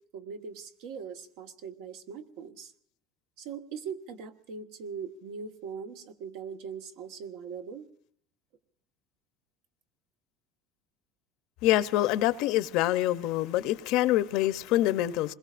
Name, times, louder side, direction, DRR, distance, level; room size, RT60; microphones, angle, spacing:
voice 1, 0.1-2.7 3.4-7.8, right 6 dB, 75° right, 1.3 m, -41 dB
voice 2, 11.6-15.3, left 14 dB, 60° left, 0.6 m, -25 dB
26.5 x 21.5 x 2.5 m
cardioid pair, 145°, 0 cm